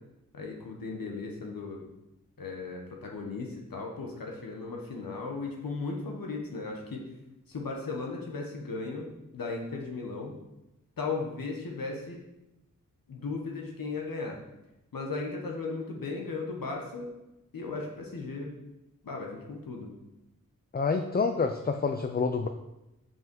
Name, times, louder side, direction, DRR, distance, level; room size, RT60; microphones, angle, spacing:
voice 1, 0.3-1.8 2.4-7.0 7.5-9.1 9.3-10.3 11.0-12.2 13.1-14.4 14.9-17.1 17.5-18.5 19.0-19.9, left 3 dB, 80° left, 0 dB, 1.2 m, -36 dB
voice 2, 20.7-22.5, left 4 dB, 30° left, 6 dB, 0.5 m, -27 dB
5.7 x 5.6 x 5.3 m, 0.94 s
wide cardioid pair, 70°, 34 cm